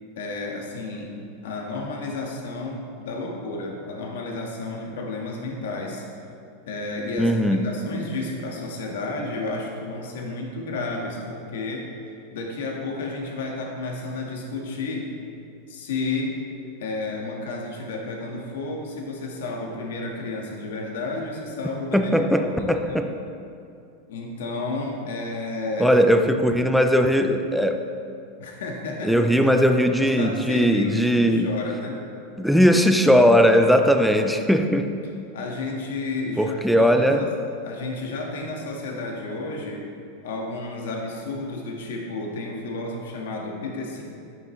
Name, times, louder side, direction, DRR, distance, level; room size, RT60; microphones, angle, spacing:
voice 1, 0.1-1.2 1.4-6.0 6.7-11.9 12.3-15.1 15.7-16.4 16.8-23.0 24.1-26.0 28.4-29.5 30.0-32.0 35.3-37.3 37.6-39.8 40.2-44.0, left 3 dB, 90° left, 0 dB, 1.6 m, -31 dB
voice 2, 7.2-7.7 21.9-23.1 25.8-27.8 29.0-31.5 32.4-34.9 36.4-37.3, equal, ahead, 6 dB, 0.4 m, -19 dB
11.5 x 9.1 x 3.2 m, 2.5 s
supercardioid pair, 170°, 0 cm